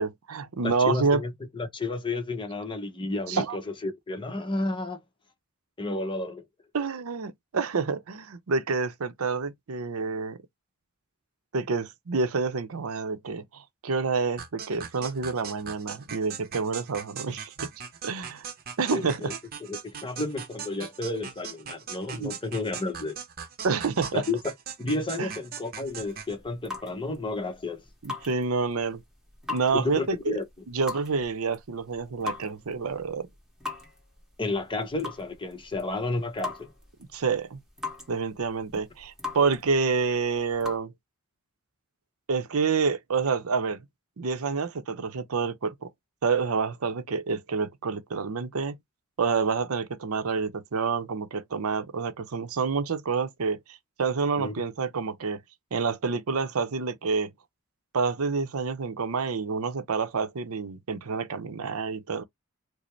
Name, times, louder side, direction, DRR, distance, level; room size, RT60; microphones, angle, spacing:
voice 1, 0.0-1.2 3.3-3.6 6.7-10.4 11.5-17.7 18.0-18.5 18.8-19.3 22.1-22.4 23.6-24.2 25.2-25.3 28.0-29.0 29.5-30.4 30.7-33.3 37.1-37.6 38.1-40.9 42.3-43.8 44.2-45.9 46.2-48.8 49.2-55.4 55.7-57.3 57.9-62.2, right 5 dB, 90° right, 0.6 m, -28 dB
voice 2, 0.6-5.0 5.8-6.4 18.9-19.3 19.7-23.2 24.1-24.4 24.8-27.8 29.7-30.4 34.4-36.7 54.4-54.5, left 2 dB, 25° left, 0.8 m, -31 dB
sound 1, 14.4-26.3, right 7 dB, 45° right, 0.7 m, -40 dB
sound 2, 25.8-40.8, left 3 dB, 5° right, 1.3 m, -42 dB
5.0 x 2.0 x 3.1 m
head